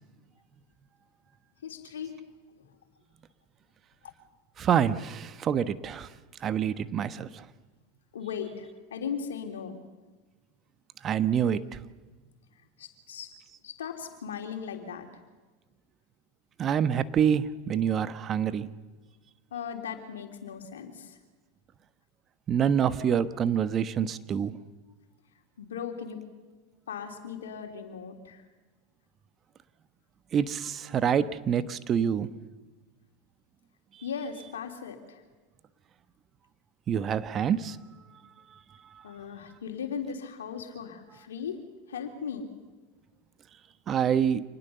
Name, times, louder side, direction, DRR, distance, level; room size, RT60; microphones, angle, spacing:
voice 1, 1.6-2.2 2.5-2.6 8.1-9.8 12.8-13.3 13.6-15.2 19.5-21.2 25.6-26.2 26.9-28.4 34.0-35.2 39.0-41.6 41.9-42.5, left 7 dB, 85° left, 4 dB, 3.4 m, -38 dB
voice 2, 4.6-6.1 6.4-7.4 11.0-11.6 16.6-18.7 22.5-24.5 30.3-32.3 36.9-37.8 43.9-44.4, right 8 dB, 35° right, 13 dB, 1.2 m, -26 dB
27.0 x 20.0 x 6.9 m, 1.3 s
hypercardioid pair, 95°, 0 cm